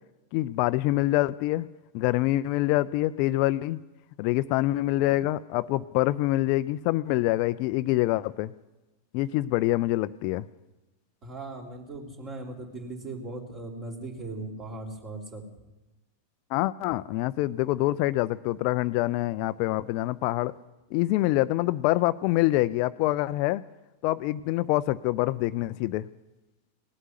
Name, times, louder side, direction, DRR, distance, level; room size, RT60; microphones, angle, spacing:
voice 1, 0.3-1.7 1.9-3.8 4.2-8.5 9.1-10.5 16.5-20.5 20.9-23.6 24.0-26.1, left 17 dB, 45° left, 15 dB, 0.4 m, -25 dB
voice 2, 11.2-15.5, right 2 dB, 30° right, 2 dB, 3.6 m, -38 dB
18.5 x 8.1 x 9.5 m, 1.1 s
figure-of-eight pair, 90°, 0 cm